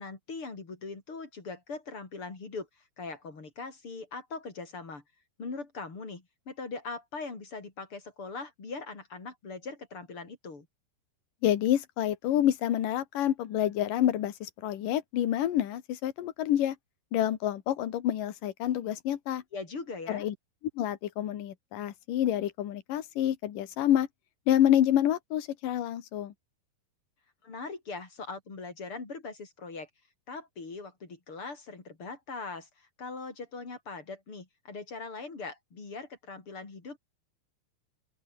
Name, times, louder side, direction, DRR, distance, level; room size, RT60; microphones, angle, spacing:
voice 1, 0.0-5.0 5.4-10.7 19.5-20.3 27.4-29.9 30.3-37.0, left 4 dB, 35° left, 5.1 m, -41 dB
voice 2, 11.4-16.7 17.1-19.4 20.1-20.3 20.8-24.1 24.5-26.3, left 11 dB, 60° left, 3.2 m, -28 dB
open air
omnidirectional pair, 4.6 m